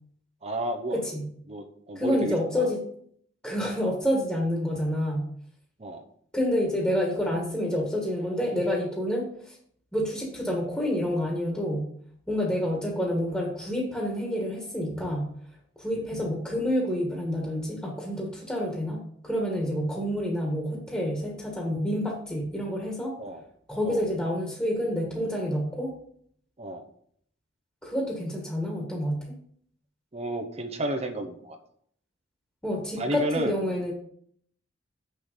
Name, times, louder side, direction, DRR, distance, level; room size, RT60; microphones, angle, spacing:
voice 1, 0.4-1.0 1.5-2.7 5.8-6.0 23.2-23.4 23.8-24.1 26.6-26.8 30.1-31.6 33.0-33.5, right 1 dB, 35° right, 4 dB, 0.9 m, -32 dB
voice 2, 0.9-1.3 2.0-2.8 3.4-5.3 6.3-9.6 9.9-11.9 12.3-15.3 15.8-23.1 23.7-25.9 27.8-29.2 32.6-33.9, equal, 5° left, -2 dB, 1.8 m, -28 dB
7.7 x 6.4 x 5.2 m, 0.64 s
head